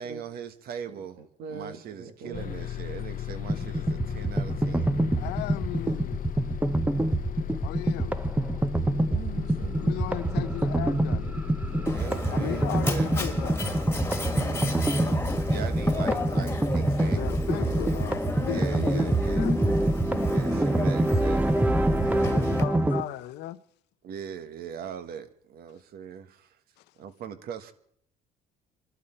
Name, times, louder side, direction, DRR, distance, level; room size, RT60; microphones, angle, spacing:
voice 1, 0.0-1.2 1.5-4.9 11.8-13.1 15.5-17.2 17.5-18.1 18.4-19.5 20.2-21.4 24.0-26.6 27.0-27.7, right 8 dB, 65° right, 1.3 m, -40 dB
voice 2, 0.9-2.6 9.1-10.5 10.8-12.6 12.9-15.9, right 7 dB, 85° right, 2.1 m, -43 dB
Bus, 2.3-12.0, left 12 dB, 55° left, 0.8 m, -36 dB
sound 1, 3.5-23.0, right 2 dB, 10° right, 0.6 m, -26 dB
voice 3, 5.2-6.2 7.6-8.2 9.8-11.2 12.3-13.6 17.1-19.7 22.0-23.6, left 14 dB, 85° left, 0.8 m, -36 dB
Mechanisms, 11.9-22.6, left 2 dB, 15° left, 1.8 m, -31 dB
28.0 x 12.0 x 4.4 m
cardioid pair, 110°, 17 cm